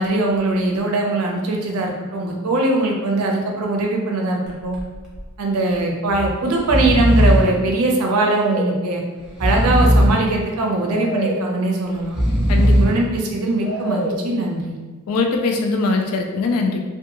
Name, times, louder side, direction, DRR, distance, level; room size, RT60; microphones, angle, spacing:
voice 1, 0.0-4.8 5.4-9.0 9.4-12.2 12.8-14.8, right 2 dB, 75° right, 1 dB, 0.5 m, -21 dB
Breathing, 4.5-4.8 5.1-5.2 6.1-6.3 6.6-7.6 8.2-8.8 9.3-10.3 10.9-11.5 12.0-13.0 13.6-14.2, equal, 5° right, 0.6 m, -19 dB
voice 2, 15.1-16.8, left 3 dB, 70° left, 3 dB, 0.3 m, -21 dB
2.6 x 2.2 x 2.8 m, 1.3 s
head